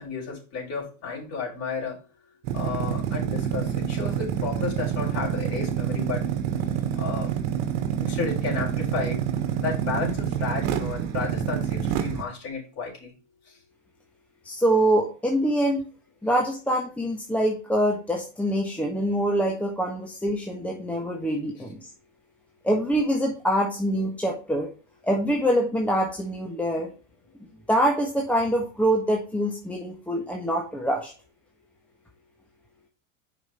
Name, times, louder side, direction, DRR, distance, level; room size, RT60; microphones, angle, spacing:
voice 1, 0.0-2.0 2.5-6.2 7.0-7.3 8.0-9.2 9.5-13.1, left 5 dB, 35° left, -1 dB, 4.5 m, -32 dB
sound 1, 2.4-12.2, right 9 dB, 60° right, 1.5 m, -27 dB
voice 2, 14.4-15.8 16.2-21.9 22.6-24.7 25.0-26.9 27.7-31.1, right 1 dB, 5° left, 0 dB, 1.3 m, -25 dB
6.1 x 5.5 x 4.4 m, 0.35 s
hypercardioid pair, 115°, 40 cm